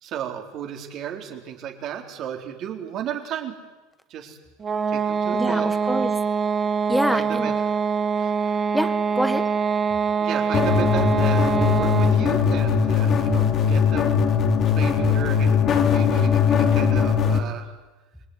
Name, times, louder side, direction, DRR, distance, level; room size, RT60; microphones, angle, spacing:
voice 1, 0.0-3.5 4.1-4.4 4.9-5.7 7.1-7.5 8.2-8.6 10.2-14.3 14.8-17.7, right 9 dB, 40° right, 3 dB, 4.2 m, -34 dB
sound 1, 4.6-12.3, right 6 dB, 20° right, 1.5 m, -24 dB
voice 2, 5.3-6.1 6.9-7.5 8.7-9.5, equal, ahead, 10 dB, 1.8 m, -25 dB
sound 2, 10.5-17.4, left 7 dB, 30° left, 3.0 m, -20 dB
27.5 x 21.5 x 9.8 m, 1.2 s
supercardioid pair, 150°, 0 cm